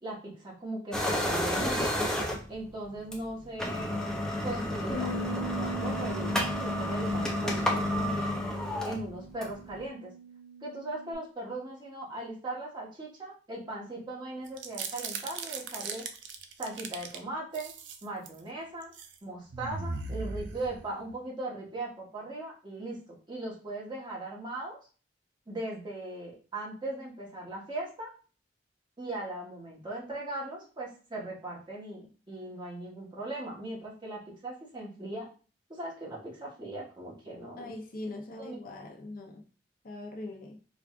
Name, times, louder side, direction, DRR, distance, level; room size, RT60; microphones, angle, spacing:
voice 1, 0.0-1.9 2.5-4.1 4.4-8.4 8.8-10.1 10.6-16.0 16.6-17.7 18.0-18.9 19.2-23.0 23.3-24.8 25.5-28.1 29.0-35.3 35.7-37.7 38.4-38.6, right 2 dB, 25° right, -4 dB, 1.1 m, -39 dB
sound 1, 0.9-2.6 3.1-3.2 3.5-9.7, left 1 dB, 5° left, 0.5 m, -30 dB
Bass guitar, 4.9-11.1, right 3 dB, 20° left, 1.0 m, -41 dB
sound 2, 14.5-17.2 17.5-18.4 18.8-19.1 19.5-21.1, right 4 dB, 80° right, 0.5 m, -38 dB
voice 2, 37.6-39.4 39.8-40.6, left 2 dB, 50° left, 1 dB, 0.6 m, -41 dB
4.7 x 2.3 x 2.4 m, 0.37 s
head